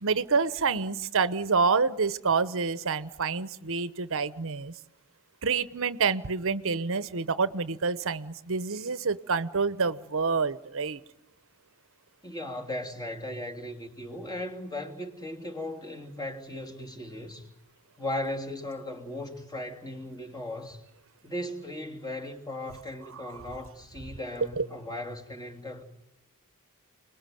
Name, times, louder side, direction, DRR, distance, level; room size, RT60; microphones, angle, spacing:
voice 1, 0.0-4.7 5.4-11.0 24.6-24.7, right 4 dB, 65° right, 14 dB, 1.0 m, -27 dB
voice 2, 12.2-17.4 18.0-20.8 21.2-25.8, left 1 dB, 20° left, 3 dB, 3.1 m, -37 dB
30.0 x 21.0 x 9.3 m, 0.85 s
head